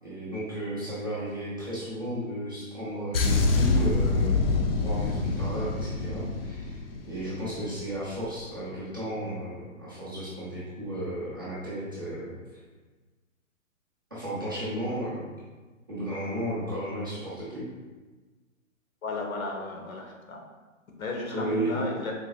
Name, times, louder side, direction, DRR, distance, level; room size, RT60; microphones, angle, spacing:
voice 1, 0.0-4.4 4.8-12.3 14.1-15.3 15.9-17.7 21.3-21.8, right 1 dB, 20° right, -11 dB, 0.4 m, -34 dB
sound 1, 3.1-7.7 8.0-8.2, left 3 dB, 50° left, 0.4 m, -26 dB
voice 2, 19.0-20.4 21.0-22.1, left 2 dB, 85° left, 0 dB, 1.0 m, -33 dB
3.8 x 2.6 x 2.7 m, 1.3 s
hypercardioid pair, 150°, 40 cm